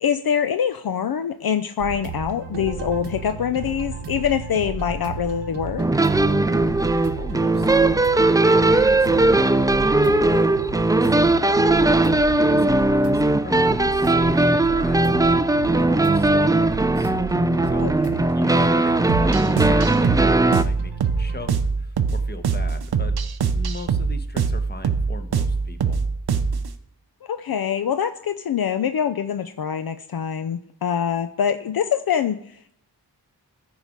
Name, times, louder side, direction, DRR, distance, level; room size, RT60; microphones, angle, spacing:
voice 1, 0.0-5.9 17.8-17.9 27.2-32.7, left 8 dB, 60° left, 10 dB, 0.6 m, -24 dB
sound 1, 1.8-21.5, right 5 dB, 85° right, 1.1 m, -34 dB
sound 2, 5.8-20.6, right 2 dB, 10° right, 0.4 m, -19 dB
voice 2, 6.7-11.8 12.2-15.2 15.6-17.1 17.7-17.9 18.3-23.2 23.5-26.1, left 2 dB, 25° left, 8 dB, 1.2 m, -39 dB
sound 3, 19.1-26.7, right 5 dB, 65° right, 0.8 m, -23 dB
13.5 x 4.8 x 5.2 m, 0.71 s
cardioid pair, 55°, 42 cm